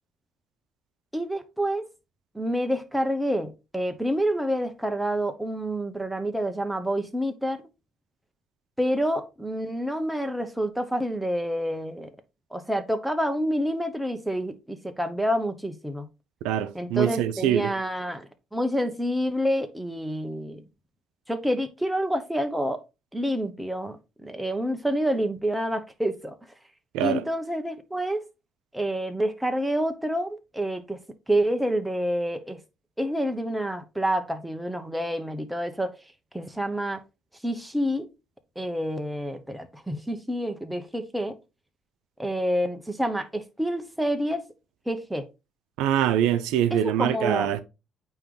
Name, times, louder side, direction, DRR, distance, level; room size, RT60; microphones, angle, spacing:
voice 1, 1.1-1.8 2.3-7.6 8.8-12.1 12.5-16.1 16.7-20.6 21.3-22.8 23.1-26.3 27.0-28.2 28.7-31.0 31.3-32.6 33.0-35.9 36.3-37.0 37.4-38.1 38.6-41.4 42.2-44.4 44.9-45.3 46.7-47.6, equal, 5° right, 1.1 m, -28 dB
voice 2, 16.4-17.7 26.9-27.2 45.8-47.6, right 11 dB, 85° right, 0.6 m, -24 dB
8.8 x 3.1 x 3.9 m
cardioid pair, 85°, 0 cm